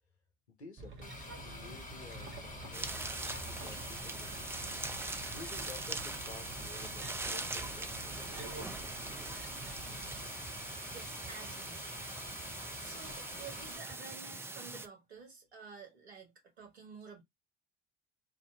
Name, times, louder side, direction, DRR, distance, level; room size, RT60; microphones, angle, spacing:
voice 1, 0.5-3.1 3.5-4.7 5.3-8.9, left 4 dB, 90° left, 0.6 m, -53 dB
sound 1, 0.8-10.3, right 3 dB, 35° right, 1.0 m, -49 dB
sound 2, 1.0-13.8, left 2 dB, 25° left, 1.1 m, -48 dB
sound 3, 2.7-14.9, right 2 dB, 10° right, 0.4 m, -42 dB
voice 2, 10.9-11.9 12.8-17.2, right 5 dB, 80° right, 1.2 m, -51 dB
3.0 x 2.5 x 3.7 m
figure-of-eight pair, 55°, 32 cm